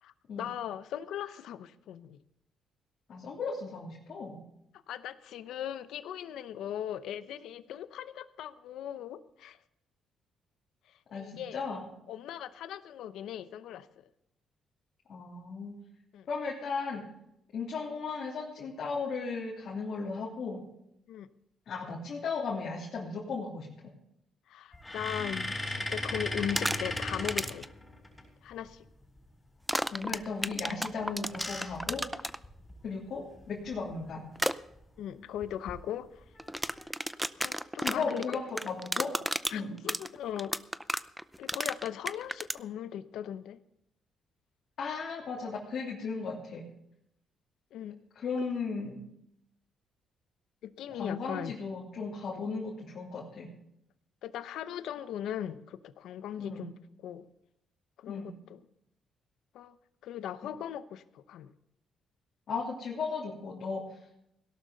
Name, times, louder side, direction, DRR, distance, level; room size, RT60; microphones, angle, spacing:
voice 1, 0.0-2.2 4.9-9.6 11.1-11.6 12.1-14.0 16.1-16.3 21.1-21.3 24.5-27.7 28.4-28.8 35.0-36.2 37.4-38.4 39.5-40.5 41.4-43.6 47.7-48.0 50.6-51.6 54.2-56.7 57.0-57.2 58.0-58.6 59.5-59.7 60.0-61.5, left 10 dB, 80° left, 13 dB, 0.8 m, -39 dB
voice 2, 3.1-4.4 11.1-11.9 15.1-15.7 16.3-17.0 17.5-20.6 21.7-23.7 29.9-32.3 32.8-34.2 37.8-39.1 39.5-39.7 44.8-46.6 48.1-48.9 50.9-53.5 56.4-56.6 58.1-58.3 62.5-64.0, left 4 dB, 60° left, -5 dB, 3.1 m, -36 dB
sound 1, 24.7-28.2 30.9-32.8 33.4-33.5 33.7-33.9 35.4-35.7 36.3-36.9, left 1 dB, 15° left, 7.2 m, -37 dB
sound 2, 26.4-27.0 27.3-27.7 29.7-32.4 34.4-34.5 36.4-42.6, right 1 dB, 5° right, 0.5 m, -32 dB
17.0 x 12.0 x 4.0 m, 0.77 s
cardioid pair, 90°, 0 cm